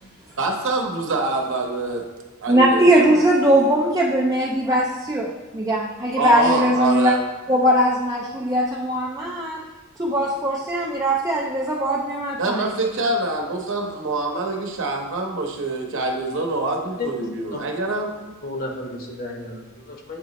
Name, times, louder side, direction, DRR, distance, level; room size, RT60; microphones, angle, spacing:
voice 1, 0.4-2.1 2.4-3.2 6.2-7.2 12.4-18.1, right 2 dB, 60° right, 2 dB, 0.9 m, -25 dB
voice 2, 2.5-7.1 7.5-9.6 10.0-12.7, right 1 dB, 15° right, -3 dB, 0.4 m, -20 dB
voice 3, 17.0-17.6 18.4-20.2, left 2 dB, 45° left, 1 dB, 1.0 m, -33 dB
8.3 x 3.0 x 4.1 m, 1.3 s
head